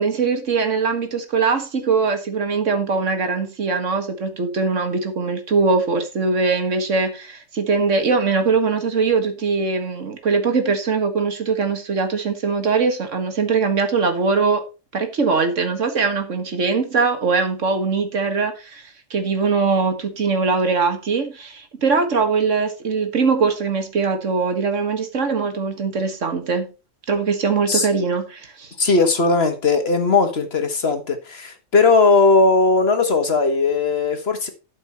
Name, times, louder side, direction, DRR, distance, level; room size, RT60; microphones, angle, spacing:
voice 1, 0.0-14.6 14.9-26.7 27.1-28.7, right 4 dB, 70° right, 1.9 m, -21 dB
voice 2, 28.8-34.5, left 3 dB, 55° left, 1.7 m, -18 dB
12.0 x 5.4 x 4.3 m
omnidirectional pair, 1.3 m